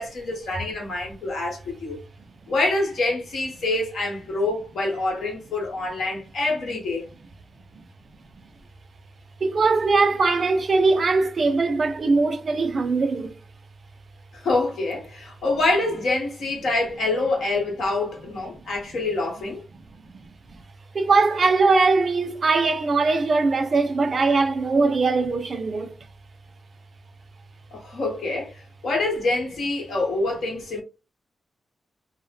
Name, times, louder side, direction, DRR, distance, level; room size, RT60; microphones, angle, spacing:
voice 1, 0.0-2.0 2.5-7.0 14.3-19.6 27.7-30.8, left 2 dB, 80° left, 1.0 m, -26 dB
voice 2, 9.4-13.3 18.6-18.7 20.0-20.1 20.9-25.9, right 3 dB, 45° right, 0.4 m, -21 dB
2.0 x 2.0 x 3.2 m
wide cardioid pair, 120°, 0 cm